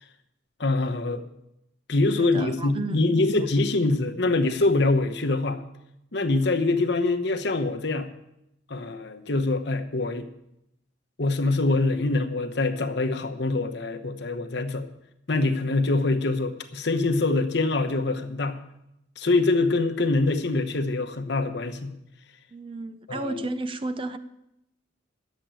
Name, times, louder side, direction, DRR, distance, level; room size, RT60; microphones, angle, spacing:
voice 1, 0.6-1.2 1.9-5.6 6.1-8.1 8.7-10.3 11.2-14.9 15.3-18.6 19.2-21.9 23.1-23.5, left 2 dB, 55° left, 1.0 m, -24 dB
voice 2, 2.1-3.0 3.4-3.5 22.5-24.2, right 2 dB, 25° right, 0.5 m, -33 dB
10.0 x 7.5 x 9.0 m
head